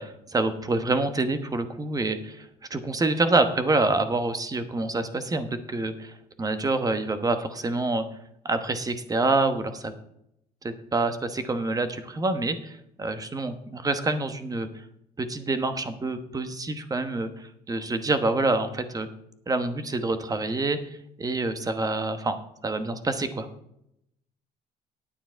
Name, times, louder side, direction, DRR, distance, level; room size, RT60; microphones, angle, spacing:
voice 1, 0.0-8.0 8.4-9.9 10.6-14.7 15.2-19.1 19.5-23.5, right 2 dB, 20° right, 9 dB, 1.1 m, -27 dB
10.0 x 8.9 x 4.5 m, 0.80 s
cardioid pair, 110°, 17 cm